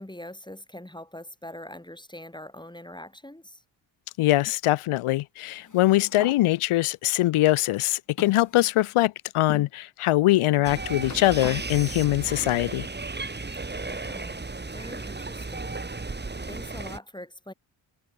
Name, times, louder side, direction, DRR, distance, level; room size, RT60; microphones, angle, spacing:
voice 1, 0.0-3.6 13.8-14.4 14.7-16.1 16.5-17.5, left 1 dB, 10° left, 5.9 m, -43 dB
voice 2, 4.2-12.9, left 16 dB, 85° left, 0.8 m, -22 dB
sound 1, 5.6-6.4 7.2-7.3 8.2-9.0 9.5-9.7 10.6-11.6, left 5 dB, 35° left, 3.0 m, -40 dB
sound 2, 10.6-17.0, right 3 dB, 20° right, 2.1 m, -34 dB
cardioid pair, 70°, 49 cm